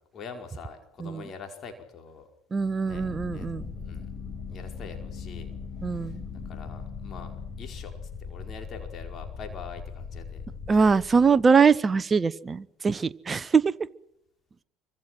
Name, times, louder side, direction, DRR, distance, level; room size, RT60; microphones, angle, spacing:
voice 1, 0.1-2.3 2.8-3.0 3.3-3.5 3.8-4.1 4.5-5.5 5.9-6.2 6.4-10.4 10.7-11.1, left 5 dB, 40° left, 5 dB, 4.9 m, -44 dB
voice 2, 2.5-3.6 5.8-6.2 10.7-13.6, right 5 dB, 25° right, 18 dB, 1.0 m, -22 dB
sound 1, 2.9-11.6, left 5 dB, 20° left, 5.8 m, -39 dB
27.0 x 24.5 x 6.1 m, 0.78 s
figure-of-eight pair, 65°, 0 cm